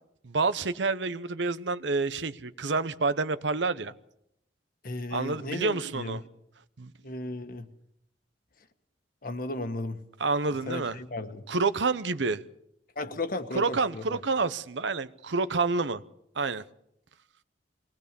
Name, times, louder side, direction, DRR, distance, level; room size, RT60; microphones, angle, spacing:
voice 1, 0.2-3.9 5.1-6.2 6.8-6.9 10.2-11.0 11.5-12.4 13.5-16.0 16.4-16.6, right 3 dB, 75° right, 0.8 m, -28 dB
voice 2, 4.8-6.2 7.0-7.7 9.2-10.0 10.7-11.4 12.9-14.2, left 2 dB, 50° left, 1.5 m, -35 dB
22.5 x 18.5 x 6.9 m
head